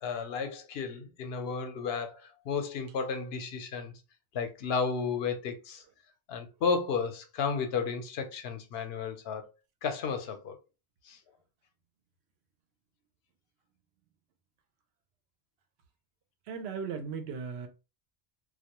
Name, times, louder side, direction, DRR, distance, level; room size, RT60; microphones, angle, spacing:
voice 1, 0.0-3.9 4.3-5.8 6.3-9.5 9.8-10.6 11.0-11.2, left 5 dB, 80° left, 0.8 m, -33 dB
voice 2, 16.5-17.7, right 6 dB, 90° right, 0.9 m, -37 dB
2.3 x 2.1 x 2.9 m
omnidirectional pair, 1.0 m